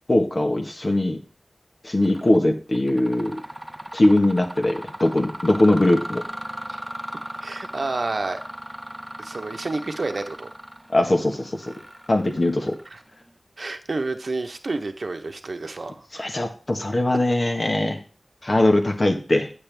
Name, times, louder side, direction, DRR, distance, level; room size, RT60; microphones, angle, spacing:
voice 1, 0.1-1.2 1.8-3.4 3.9-6.2 10.9-11.7 12.1-12.8 16.1-18.0 18.4-19.5, left 1 dB, 50° left, 5 dB, 1.3 m, -21 dB
Mechanisms, 2.0-2.4 2.7-13.3, equal, 10° right, 0.7 m, -37 dB
voice 2, 7.4-8.4 9.2-10.5 12.9-13.0 13.6-16.3, right 3 dB, 70° right, 6 dB, 0.9 m, -29 dB
8.9 x 6.9 x 3.4 m, 0.38 s
wide cardioid pair, 45°, 0 cm